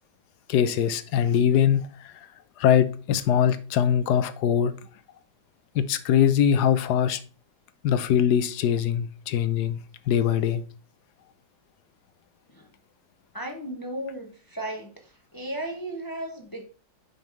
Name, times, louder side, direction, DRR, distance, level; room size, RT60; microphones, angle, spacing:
voice 1, 0.5-1.9 2.6-4.7 5.7-7.2 7.8-9.8 10.1-10.6, left 9 dB, 70° left, 13 dB, 1.1 m, -22 dB
voice 2, 13.3-14.9 15.3-16.6, right 1 dB, 20° left, 3 dB, 0.5 m, -35 dB
5.5 x 5.2 x 4.5 m, 0.36 s
omnidirectional pair, 2.0 m